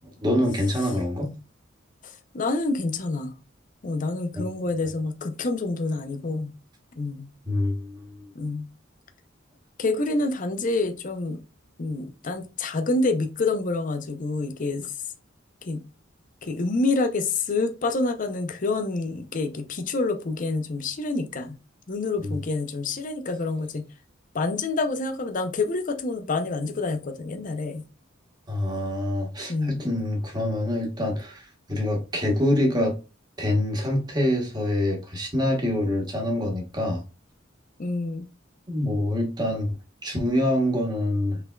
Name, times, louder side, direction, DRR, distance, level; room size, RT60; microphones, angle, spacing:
voice 1, 0.0-1.3 4.3-4.5 7.5-8.3 22.2-22.4 28.5-33.0 33.4-37.0 38.7-39.8 40.0-41.4, left 1 dB, 20° right, 1.2 m, -25 dB
voice 2, 2.0-3.3 3.8-6.5 7.0-7.3 8.3-8.7 9.8-11.4 11.8-14.9 15.6-15.8 16.4-21.6 21.9-23.8 24.3-27.8 29.5-29.8 37.8-38.2, left 3 dB, 40° left, 0.6 m, -27 dB
5.0 x 3.4 x 2.2 m
head